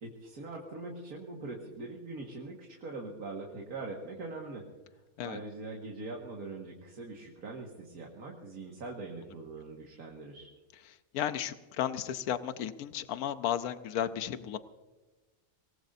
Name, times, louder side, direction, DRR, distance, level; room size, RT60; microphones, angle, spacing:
voice 1, 0.0-4.7 5.2-10.5, right 3 dB, 85° right, -1 dB, 2.2 m, -42 dB
voice 2, 11.1-14.6, left 10 dB, 85° left, 11 dB, 1.2 m, -33 dB
25.0 x 19.0 x 2.7 m, 1.2 s
omnidirectional pair, 1.5 m